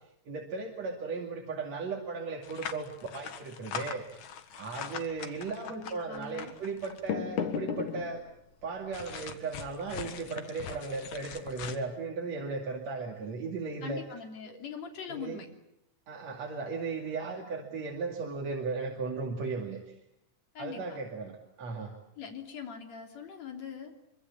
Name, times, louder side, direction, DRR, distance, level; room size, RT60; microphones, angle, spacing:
voice 1, 0.3-4.0 4.5-8.2 8.6-14.0 14.5-14.6 15.1-15.4 16.1-19.9 20.6-21.9, right 4 dB, 65° right, 0 dB, 3.7 m, -36 dB
sound 1, 2.4-8.3 8.9-11.8, left 7 dB, 85° left, 3.1 m, -38 dB
voice 2, 5.6-6.5 13.8-15.5 20.5-21.0 22.2-23.9, left 7 dB, 65° left, 3 dB, 4.5 m, -42 dB
25.0 x 25.0 x 8.6 m, 0.79 s
omnidirectional pair, 3.3 m